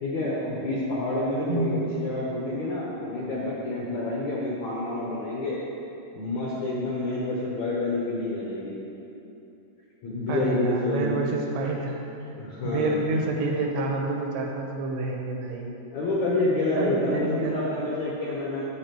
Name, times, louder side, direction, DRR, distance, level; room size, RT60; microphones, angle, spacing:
voice 1, 0.0-5.6 6.2-8.7 10.0-11.2 12.4-13.1 15.9-18.6, left 2 dB, 75° left, -6 dB, 1.7 m, -28 dB
voice 2, 1.5-1.9 10.3-12.0 12.3-12.4 12.6-15.7 16.8-17.9, right 2 dB, 90° right, 0 dB, 3.0 m, -28 dB
8.7 x 8.6 x 3.0 m, 2.8 s
omnidirectional pair, 4.5 m